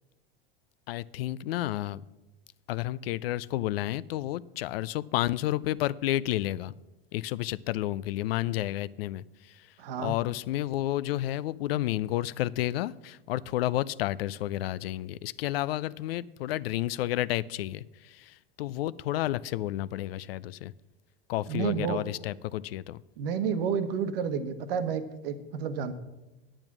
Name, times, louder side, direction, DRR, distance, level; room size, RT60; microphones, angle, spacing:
voice 1, 0.9-2.0 2.7-6.7 7.1-9.7 10.0-20.7 21.3-23.0, left 15 dB, 75° left, 20 dB, 0.5 m, -31 dB
voice 2, 9.8-10.1 21.5-22.0 23.2-25.9, right 7 dB, 70° right, 10 dB, 1.1 m, -30 dB
9.0 x 8.9 x 6.0 m, 1.0 s
hypercardioid pair, 115°, 30 cm